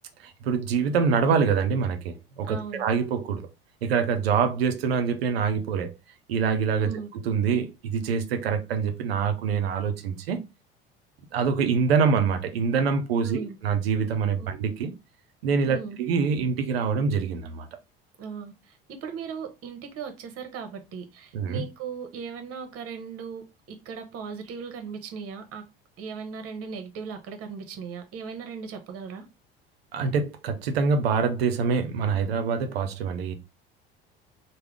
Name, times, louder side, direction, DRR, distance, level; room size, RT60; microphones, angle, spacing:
voice 1, 0.2-3.5 3.8-5.9 6.3-10.4 11.3-14.9 15.4-17.7 21.3-21.6 29.9-33.3, right 6 dB, 85° right, 0.6 m, -25 dB
voice 2, 2.4-2.9 6.8-7.1 13.2-13.6 15.6-16.0 18.2-25.7 26.0-29.3, right 6 dB, 50° right, 0.9 m, -38 dB
3.4 x 2.2 x 3.3 m
hypercardioid pair, 70°, 30 cm